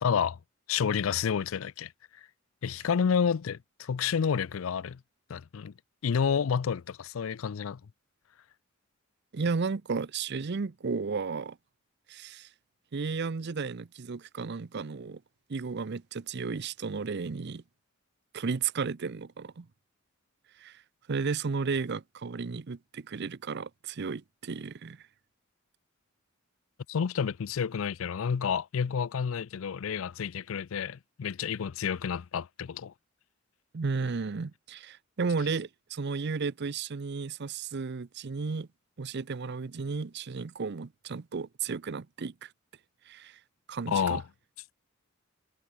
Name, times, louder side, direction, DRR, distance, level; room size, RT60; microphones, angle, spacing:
voice 1, 0.0-0.4 0.7-1.9 2.2-2.3 2.6-5.0 5.3-5.7 6.0-7.8 26.9-32.9 43.9-44.2, left 7 dB, 75° left, 0.4 m, -29 dB
voice 2, 9.3-11.6 12.1-12.5 12.9-15.2 15.5-17.6 18.3-19.7 20.6-20.8 21.1-25.0 33.7-38.7 39.0-42.5 43.1-43.4 43.7-44.2, right 4 dB, 55° right, 0.6 m, -33 dB
head